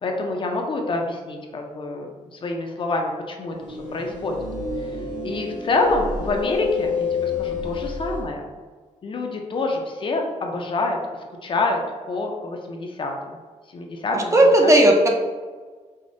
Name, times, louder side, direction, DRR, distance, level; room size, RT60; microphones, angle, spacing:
voice 1, 0.0-4.4 4.8-4.9 5.2-8.5 9.0-11.0 11.4-11.8 12.1-13.4 13.7-14.3 14.6-14.7, left 3 dB, 40° left, 2 dB, 0.4 m, -27 dB
sound 1, 3.6-8.3, left 4 dB, 75° right, 0.7 m, -29 dB
voice 2, 14.1-15.1, right 1 dB, 20° right, 1 dB, 0.4 m, -15 dB
4.8 x 2.1 x 2.6 m, 1.5 s
wide cardioid pair, 155°, 13 cm